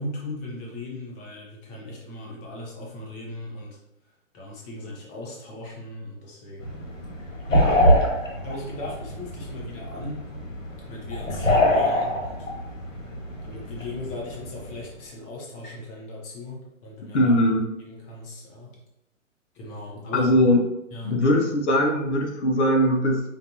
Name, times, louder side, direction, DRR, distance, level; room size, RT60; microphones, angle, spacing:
voice 1, 0.0-3.8 4.3-6.8 7.3-7.8 8.4-10.2 10.9-12.5 13.4-17.3 17.8-18.8 19.5-20.3 20.9-21.2, left 2 dB, 20° left, -3 dB, 0.7 m, -37 dB
sound 1, 6.6-14.9, left 1 dB, 80° left, 1.4 m, -25 dB
voice 2, 17.1-17.7 20.1-20.6 21.0-23.2, left 1 dB, 60° left, 1 dB, 1.0 m, -20 dB
5.1 x 2.5 x 2.9 m, 0.88 s
figure-of-eight pair, 125°, 39 cm